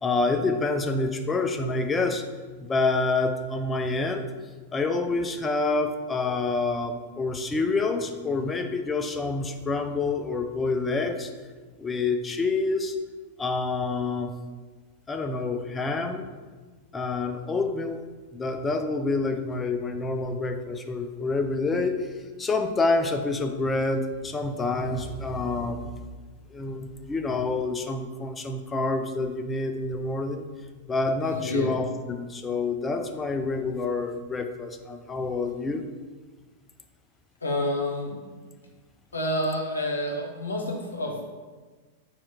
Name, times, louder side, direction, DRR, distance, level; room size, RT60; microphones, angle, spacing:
voice 1, 0.0-2.2 2.6-4.3 4.7-11.3 11.8-12.9 13.4-14.3 15.1-16.3 16.9-18.0 18.3-22.1 22.4-26.0 26.5-30.5 30.9-35.9, left 3 dB, 15° left, 7 dB, 0.4 m, -27 dB
voice 2, 31.4-31.7 37.4-38.2 39.1-41.2, left 1 dB, 80° left, 0 dB, 0.8 m, -28 dB
4.2 x 2.4 x 4.4 m, 1.4 s
figure-of-eight pair, 95°, 0 cm